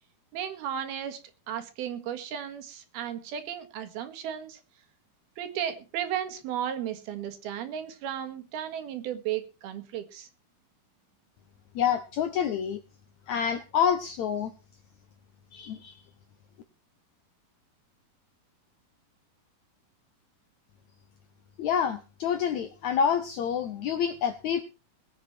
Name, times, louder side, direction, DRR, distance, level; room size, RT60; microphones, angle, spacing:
voice 1, 0.3-1.2 1.5-4.6 5.4-10.3, right 9 dB, 80° right, 7 dB, 3.6 m, -34 dB
voice 2, 11.8-12.8 13.3-14.5 15.5-16.0 21.6-24.6, left 8 dB, 75° left, 10 dB, 1.7 m, -27 dB
21.0 x 8.1 x 4.4 m, 0.31 s
omnidirectional pair, 4.4 m